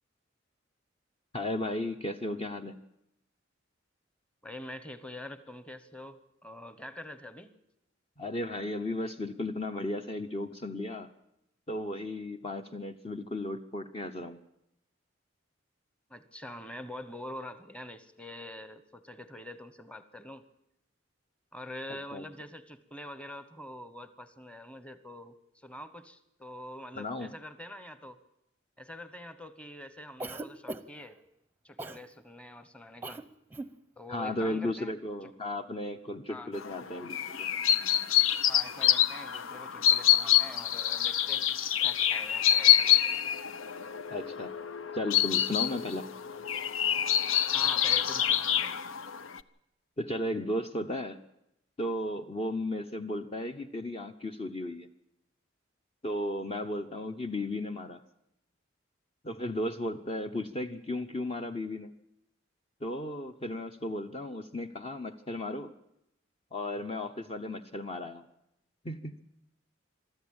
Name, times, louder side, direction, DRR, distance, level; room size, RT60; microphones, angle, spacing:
voice 1, 1.3-2.8 8.2-11.1 11.7-14.4 22.1-22.2 27.0-27.3 34.1-37.5 44.1-44.5 44.9-46.1 50.0-51.2 51.8-54.9 56.0-58.0 59.2-61.9 62.8-65.7 66.5-68.2 68.8-69.2, left 1 dB, 30° left, 7 dB, 0.8 m, -35 dB
voice 2, 4.4-7.5 16.1-20.5 21.5-28.2 28.8-31.2 31.6-33.2 34.0-34.9 35.2-35.3 36.3-36.5 38.5-43.2 47.5-48.8, left 1 dB, 5° left, 12 dB, 1.0 m, -45 dB
Cough, 30.2-31.1 31.8-32.0 33.0-33.2 33.5-33.7, right 2 dB, 10° right, 0.7 m, -39 dB
sound 1, 36.5-49.4, left 11 dB, 85° left, 0.7 m, -27 dB
23.0 x 13.5 x 8.8 m, 0.82 s
head